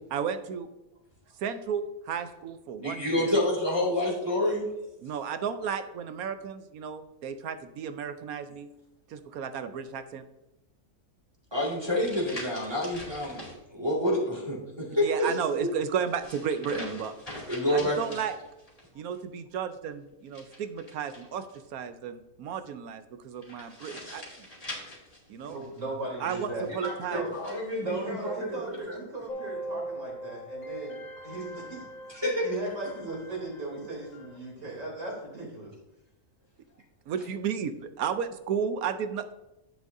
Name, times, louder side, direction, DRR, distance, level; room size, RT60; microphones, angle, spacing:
voice 1, 0.1-0.7 1.4-3.4 5.0-8.7 9.1-10.2 15.0-17.1 17.7-18.4 18.9-21.5 21.7-24.2 25.3-25.6 26.2-27.2 37.1-39.3, right 7 dB, 75° right, 10 dB, 1.1 m, -33 dB
voice 2, 2.8-4.7 11.5-13.4 13.7-15.7 17.5-18.0 25.4-25.5 26.8-29.0 32.1-32.5, left 1 dB, 15° right, -4 dB, 2.2 m, -28 dB
sound 1, 11.5-13.6 15.0-18.9 20.3-21.6 23.4-25.8 26.6-27.6, left 1 dB, 25° left, 2.5 m, -44 dB
voice 3, 25.5-26.6 27.1-27.3 27.8-31.0 31.2-31.9 32.4-35.7, right 2 dB, 55° right, -2 dB, 3.6 m, -37 dB
sound 2, 29.3-34.4, right 1 dB, 65° left, 1.5 m, -41 dB
10.0 x 8.2 x 2.7 m, 0.94 s
omnidirectional pair, 1.6 m